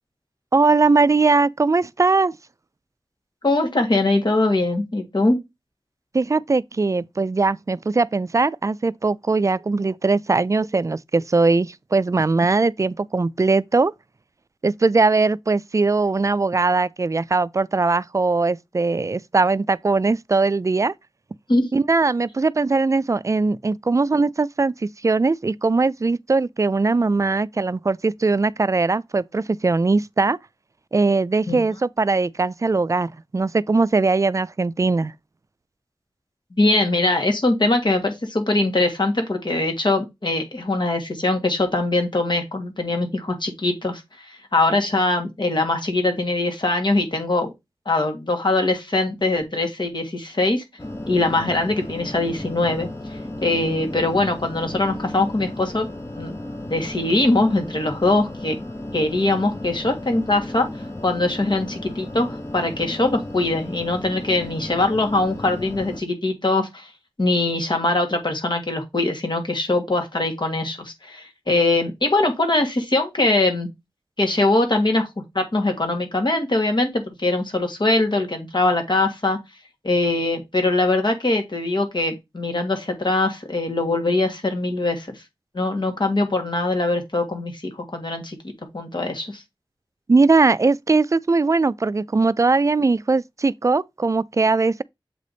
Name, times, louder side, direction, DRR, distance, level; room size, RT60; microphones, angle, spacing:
voice 1, 0.5-2.3 6.1-13.9 14.6-20.9 21.7-30.4 30.9-35.1 90.1-94.8, right 3 dB, 35° right, 0.3 m, -20 dB
voice 2, 3.4-5.4 21.5-21.7 31.5-31.6 36.6-47.5 47.9-50.6 51.1-52.9 53.4-55.9 56.2-56.4 56.6-58.6 58.9-60.7 61.0-66.9 67.2-73.7 74.2-75.1 75.4-79.4 79.8-85.2 85.5-88.4 88.7-89.4, left 2 dB, 60° left, 1.8 m, -22 dB
sound 1, 50.8-66.0, left 1 dB, 30° left, 0.7 m, -34 dB
7.4 x 3.3 x 3.9 m
wide cardioid pair, 45°, 9 cm